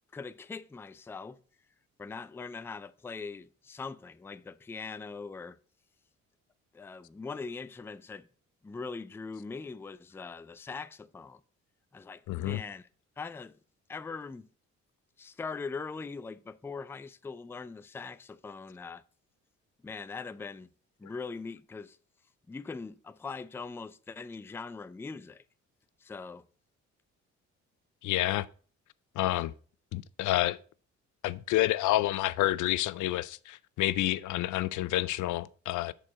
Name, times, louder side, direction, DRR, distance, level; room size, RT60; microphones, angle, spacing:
voice 1, 0.1-1.4 2.0-5.6 6.7-8.3 8.6-11.4 11.9-12.9 13.2-13.6 13.9-14.5 15.2-19.0 19.8-20.7 21.0-22.0 22.5-25.4 26.0-26.5, left 4 dB, 10° left, 0.3 m, -41 dB
voice 2, 12.3-12.6 28.0-28.5 29.2-29.5 29.9-30.6 31.2-35.9, left 16 dB, 80° left, 0.5 m, -29 dB
6.4 x 4.4 x 6.3 m
cardioid pair, 90°, 30 cm